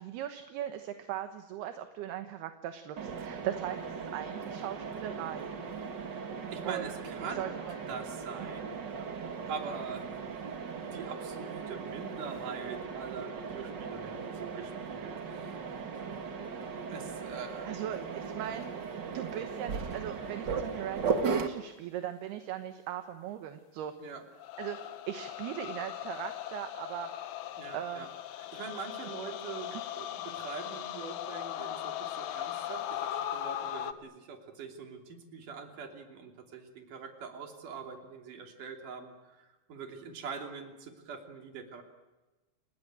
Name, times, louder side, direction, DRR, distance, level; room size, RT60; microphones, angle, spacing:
voice 1, 0.0-5.5 6.7-6.9 7.2-7.8 8.4-8.5 17.6-18.7 19.1-23.9 24.6-27.1 27.7-28.1 29.1-29.2 29.7-29.8, right 11 dB, 70° right, 8 dB, 3.0 m, -39 dB
Mechanisms, 3.0-21.5, right 5 dB, 85° right, 0.9 m, -37 dB
voice 2, 6.5-8.8 9.5-10.0 10.9-15.6 16.9-17.7 24.0-24.2 27.6-28.1 28.5-41.8, right 5 dB, 50° right, 3 dB, 4.3 m, -43 dB
Piano, 7.1-8.0, left 5 dB, 40° left, 3.3 m, -56 dB
sound 1, 24.4-33.9, left 12 dB, 70° left, 2.4 m, -39 dB
30.0 x 19.5 x 9.0 m, 1.1 s
omnidirectional pair, 5.0 m